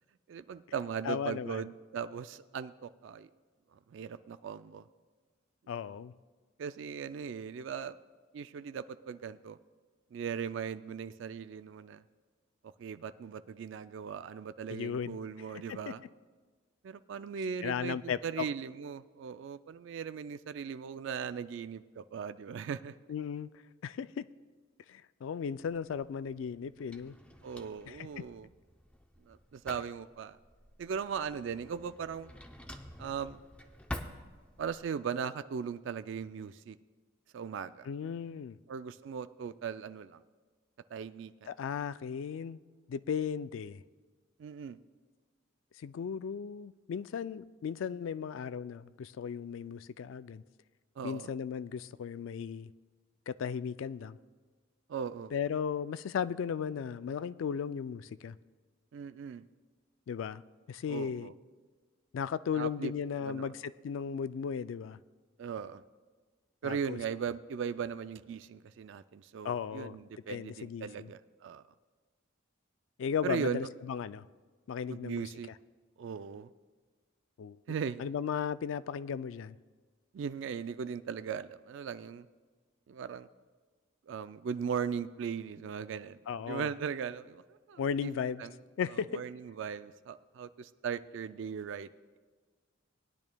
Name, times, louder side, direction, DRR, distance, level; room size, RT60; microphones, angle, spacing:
voice 1, 0.3-3.3 3.7-4.9 6.6-8.0 8.3-9.6 10.1-12.0 12.8-16.0 16.8-22.9 27.4-28.5 29.3-30.4 30.8-32.3 33.0-33.4 34.6-36.8 37.3-37.9 38.7-40.2 40.9-41.5 44.4-44.8 51.0-51.3 54.9-55.3 58.9-59.4 60.9-61.3 62.5-62.9 63.2-63.5 65.4-65.8 66.6-71.6 73.2-73.7 74.9-75.5 76.0-76.5 77.7-78.0 80.1-82.3 82.9-83.3 84.1-88.1 88.4-88.5 88.9-91.9, right 7 dB, 65° right, 13 dB, 0.3 m, -38 dB
voice 2, 1.0-1.6 5.7-6.1 14.7-15.2 15.5-15.9 17.6-18.4 23.1-23.5 23.8-24.3 24.9-27.2 27.9-28.3 37.8-38.6 41.5-42.6 42.9-43.8 45.8-50.4 51.0-52.7 53.3-54.2 55.3-58.4 60.1-60.4 60.7-61.3 62.1-65.0 66.6-67.0 69.4-70.0 70.3-71.1 73.0-74.3 74.7-75.3 77.4-77.6 78.0-79.6 86.3-86.7 87.8-88.5 88.8-89.2, left 7 dB, 75° left, 14 dB, 0.3 m, -36 dB
Drawer open or close, 25.5-34.9, equal, 5° left, 0.6 m, -49 dB
19.5 x 10.5 x 2.2 m, 1.4 s
head